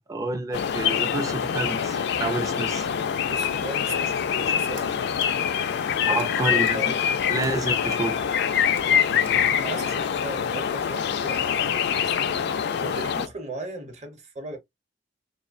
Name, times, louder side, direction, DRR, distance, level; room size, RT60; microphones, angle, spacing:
voice 1, 0.0-2.9 6.1-6.8 7.3-8.2, right 2 dB, 20° right, 0.3 m, -29 dB
sound 1, 0.5-13.3, left 8 dB, 60° left, 0.3 m, -25 dB
voice 2, 3.3-5.2 6.0-6.4 6.6-7.2 9.1-12.1 12.6-14.6, right 2 dB, 40° right, 0.8 m, -38 dB
sound 2, 4.6-4.9 5.2-5.3 6.1-6.3 6.6-6.7 7.4-7.5 7.9-8.0 8.8-8.9 9.2-9.3, right 6 dB, 80° right, 0.7 m, -47 dB
2.6 x 2.0 x 2.4 m
head